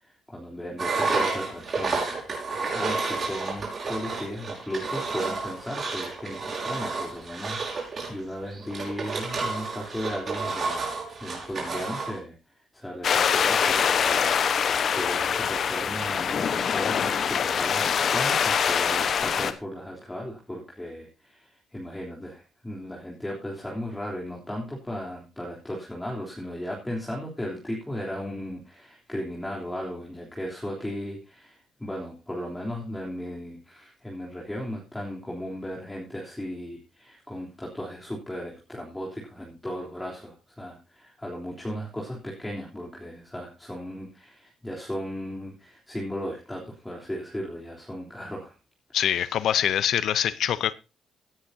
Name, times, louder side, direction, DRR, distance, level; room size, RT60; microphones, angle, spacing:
voice 1, 0.0-48.6, equal, 10° left, -3 dB, 3.5 m, -36 dB
Engine, 0.8-12.2, right 4 dB, 45° right, 5.6 m, -30 dB
sound 1, 13.0-19.5, left 7 dB, 55° left, 1.1 m, -24 dB
voice 2, 48.9-50.7, left 10 dB, 75° left, 17 dB, 0.7 m, -24 dB
17.5 x 9.9 x 2.8 m, 0.28 s
cardioid pair, 90°, 0 cm